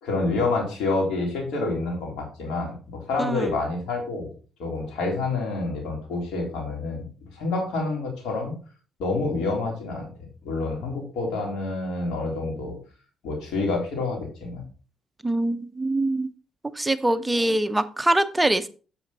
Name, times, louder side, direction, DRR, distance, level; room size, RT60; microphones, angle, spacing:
voice 1, 0.0-4.3 4.6-7.0 7.3-8.5 9.0-10.1 10.4-12.8 13.2-14.6 17.3-17.5, left 3 dB, 90° left, 0 dB, 3.6 m, -28 dB
voice 2, 15.2-16.3 16.6-18.7, right 1 dB, 10° right, 11 dB, 0.6 m, -23 dB
8.0 x 7.0 x 4.0 m, 0.37 s
cardioid pair, 90°, 0 cm